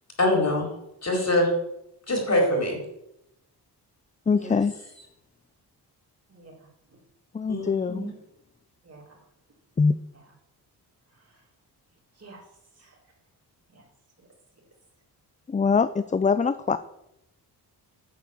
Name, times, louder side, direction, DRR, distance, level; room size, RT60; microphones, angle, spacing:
voice 1, 0.2-0.7 1.0-1.5 2.1-2.8 4.4-4.5 7.5-8.1, left 1 dB, 40° left, 1 dB, 4.4 m, -24 dB
voice 2, 4.3-4.7 7.3-8.1 9.8-9.9 15.5-16.8, left 5 dB, 20° left, 13 dB, 0.4 m, -23 dB
voice 3, 6.3-7.0 8.8-9.2 10.1-10.3 11.1-11.4 12.1-12.4 12.7-13.1 13.7-13.8 14.2-14.3 14.6-14.7, right 3 dB, 35° right, -2 dB, 4.5 m, -52 dB
9.6 x 7.5 x 7.3 m, 0.84 s
cardioid pair, 80°, 41 cm